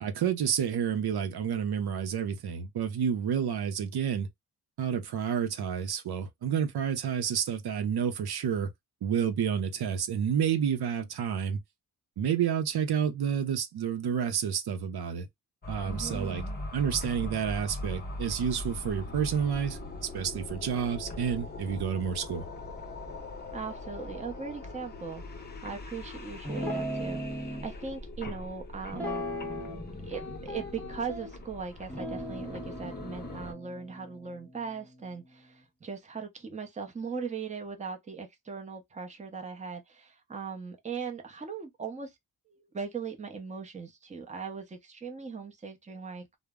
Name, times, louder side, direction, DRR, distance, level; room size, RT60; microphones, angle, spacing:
voice 1, 0.0-4.3 4.8-8.7 9.0-11.6 12.2-15.3 15.7-16.4 16.7-22.4, right 8 dB, 70° right, 0.6 m, -30 dB
sound 1, 15.6-33.5, left 2 dB, 25° left, 0.7 m, -41 dB
voice 2, 15.8-16.6 23.5-29.3 30.0-42.2 42.5-46.4, right 5 dB, 20° right, 0.6 m, -39 dB
Guitar, 26.4-27.7 28.9-29.8 30.1-31.3 31.9-35.4, equal, 5° left, 0.9 m, -38 dB
2.0 x 2.0 x 3.4 m
wide cardioid pair, 120°, 39 cm